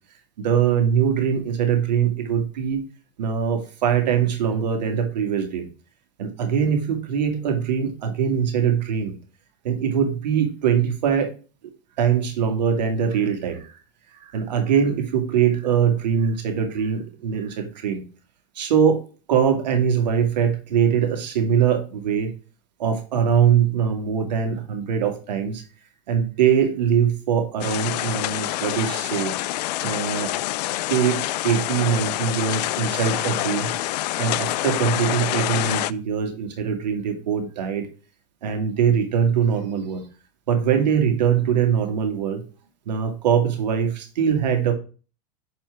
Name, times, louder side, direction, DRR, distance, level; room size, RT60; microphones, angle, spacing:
voice 1, 0.4-2.8 3.2-5.7 6.2-9.1 9.6-11.3 12.0-13.8 14.1-18.0 18.6-19.0 19.3-22.3 22.8-25.6 26.1-29.3 29.8-30.3 30.9-33.7 34.2-37.9 38.4-40.0 40.5-42.4 42.9-44.7, right 7 dB, 85° right, 5 dB, 2.1 m, -22 dB
sound 1, 27.6-35.9, left 16 dB, 75° left, 0.4 m, -26 dB
6.4 x 4.4 x 4.8 m, 0.35 s
supercardioid pair, 120°, 21 cm